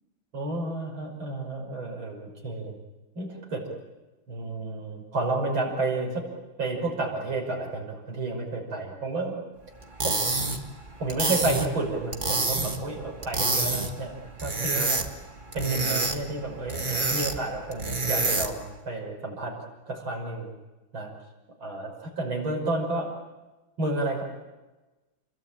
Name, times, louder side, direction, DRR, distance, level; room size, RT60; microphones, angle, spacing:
voice 1, 0.3-2.8 3.1-3.7 4.3-6.2 6.6-9.4 10.0-10.3 11.0-14.2 14.4-15.0 15.5-19.6 19.9-20.5 20.9-21.1 21.6-23.1 23.8-24.2, right 2 dB, 80° right, 0 dB, 6.6 m, -31 dB
sound 1, 9.8-18.7, right 3 dB, 25° right, 1.9 m, -28 dB
28.5 x 21.5 x 8.9 m, 1.1 s
omnidirectional pair, 2.2 m